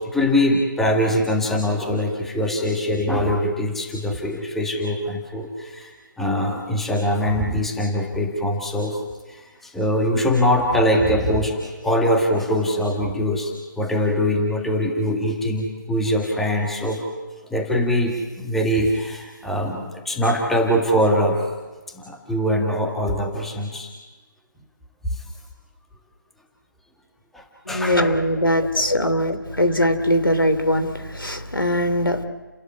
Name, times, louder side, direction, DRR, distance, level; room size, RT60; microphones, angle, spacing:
voice 1, 0.0-5.9 6.2-9.0 9.3-17.0 17.5-21.4 22.0-23.9 25.1-25.2 27.3-28.0 28.6-28.7, equal, ahead, 1 dB, 1.9 m, -22 dB
voice 2, 27.7-32.2, left 1 dB, 85° left, 8 dB, 3.1 m, -21 dB
30.0 x 14.0 x 9.7 m, 1.3 s
figure-of-eight pair, 150°, 11 cm